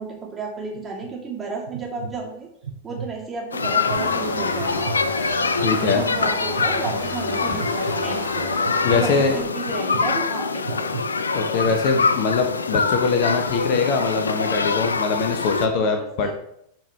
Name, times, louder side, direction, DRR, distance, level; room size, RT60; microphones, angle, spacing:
voice 1, 0.0-2.5 2.8-4.9 5.7-8.5 8.9-10.9 15.7-16.4, right 4 dB, 15° right, -3 dB, 2.7 m, -32 dB
sound 1, 0.7-1.1 1.7-2.1 2.6-3.1 3.6-4.0 4.6-5.0 5.6-6.0 6.6-6.9 7.6-8.0 8.7-9.0 9.7-10.0 10.6-11.0 11.6-12.0, right 6 dB, 65° right, 0.8 m, -33 dB
sound 2, 3.5-15.7, left 4 dB, 75° left, 0.5 m, -24 dB
sound 3, 3.9-9.4, right 1 dB, 85° right, 2.5 m, -33 dB
voice 2, 5.6-6.0 8.8-9.4 11.3-16.3, left 4 dB, 45° left, 5 dB, 1.1 m, -22 dB
11.5 x 4.8 x 3.5 m, 0.73 s
figure-of-eight pair, 90°, 0 cm